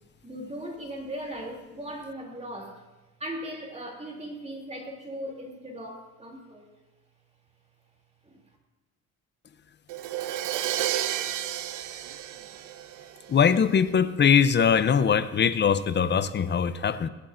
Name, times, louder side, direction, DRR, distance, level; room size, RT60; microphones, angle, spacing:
voice 1, 0.2-2.9 3.2-6.7 8.2-8.4, equal, 20° right, 0 dB, 2.9 m, -38 dB
Crash cymbal, 9.9-13.7, right 12 dB, 80° right, 0.6 m, -31 dB
voice 2, 13.3-17.1, left 7 dB, 35° left, 13 dB, 0.6 m, -22 dB
22.5 x 8.4 x 2.6 m, 1.1 s
cardioid pair, 90°, 30 cm